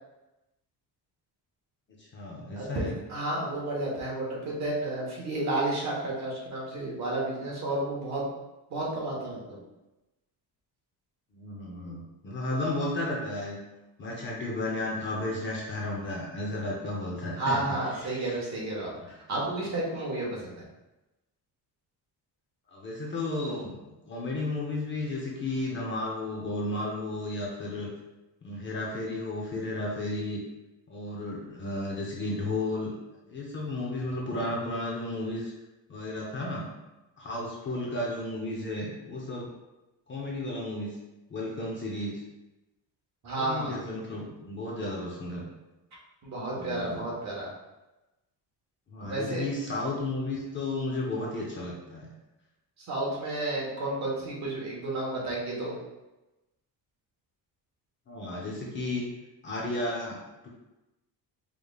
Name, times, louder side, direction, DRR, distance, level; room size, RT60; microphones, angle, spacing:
voice 1, 2.0-3.0 11.3-13.6 14.0-18.4 19.1-19.2 22.7-23.8 24.1-27.9 28.4-30.4 30.9-32.9 33.3-35.5 35.9-36.7 37.2-39.5 40.1-41.0 41.3-42.2 43.4-45.4 46.5-47.1 48.9-52.1 58.1-59.0 59.4-60.2 60.4-60.5, left 2 dB, 30° left, -3 dB, 0.7 m, -33 dB
voice 2, 3.1-8.3 8.7-9.6 17.3-20.6 43.2-43.8 46.2-47.5 49.0-49.4 52.8-55.8, right 2 dB, 45° right, -4 dB, 1.3 m, -31 dB
4.8 x 3.4 x 2.4 m, 1.0 s
cardioid pair, 180°, 39 cm